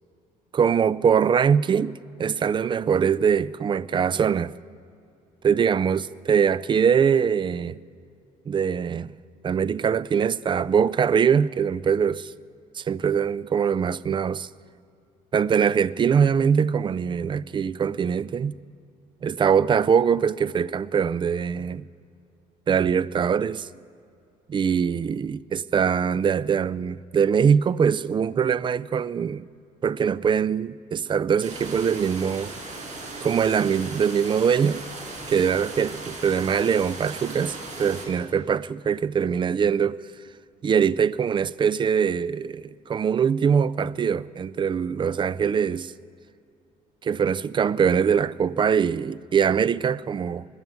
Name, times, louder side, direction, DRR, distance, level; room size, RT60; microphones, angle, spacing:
voice 1, 0.5-1.9 2.2-4.5 5.4-7.8 8.5-9.1 9.4-12.3 12.8-14.5 15.3-18.5 19.2-21.9 22.7-23.7 24.5-29.5 29.8-32.5 33.2-34.8 35.3-40.1 40.6-45.9 47.0-50.5, right 7 dB, 30° right, 0.4 m, -22 dB
sound 1, 31.4-38.1, right 2 dB, 45° right, 5.2 m, -37 dB
21.0 x 7.2 x 9.3 m
cardioid pair, 110°, 17 cm